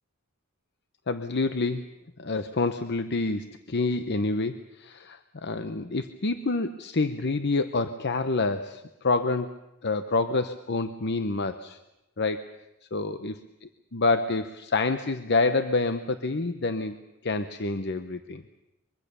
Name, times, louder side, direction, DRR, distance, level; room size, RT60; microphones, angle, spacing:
voice 1, 1.1-1.8 2.2-9.5 9.8-11.8 12.2-12.4 12.9-13.3 13.9-17.0 17.2-18.4, left 3 dB, 50° left, 10 dB, 0.8 m, -27 dB
24.0 x 23.0 x 6.8 m, 0.95 s
head